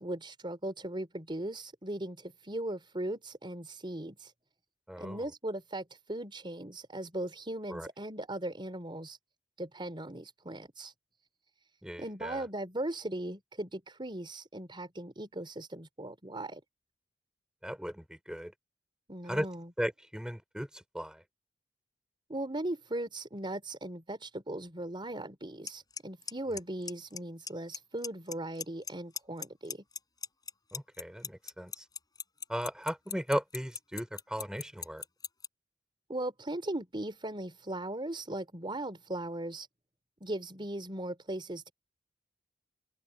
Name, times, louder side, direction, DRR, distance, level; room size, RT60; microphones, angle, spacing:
voice 1, 0.0-4.3 5.0-9.2 9.6-10.9 12.0-16.6 19.1-19.7 22.3-29.8 36.1-39.7 40.2-41.7, right 1 dB, 25° right, 3.9 m, -38 dB
voice 2, 4.9-5.2 7.7-7.9 11.8-12.4 17.6-18.5 19.3-19.5 19.8-21.2 30.7-31.8 32.5-35.0, equal, 5° right, 5.0 m, -36 dB
Clock, 25.7-25.8 26.0-26.3 26.6-27.2 27.5-27.8 28.0-28.9 29.2-35.5, left 6 dB, 20° left, 7.1 m, -37 dB
open air
head